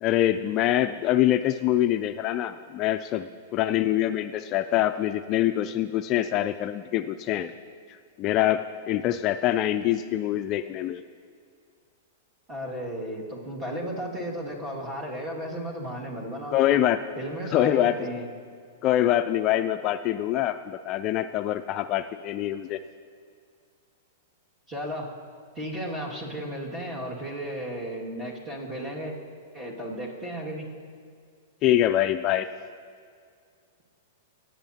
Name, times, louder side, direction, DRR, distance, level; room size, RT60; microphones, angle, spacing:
voice 1, 0.0-7.5 8.2-11.0 16.5-17.0 17.5-17.9 18.8-22.8 31.6-32.5, left 12 dB, 40° left, 10 dB, 0.3 m, -24 dB
voice 2, 12.5-16.8 17.2-18.3 24.7-25.1 25.6-29.1 29.5-30.7, equal, 20° right, -2 dB, 2.1 m, -34 dB
17.5 x 7.9 x 2.8 m, 2.2 s
hypercardioid pair, 120°, 0 cm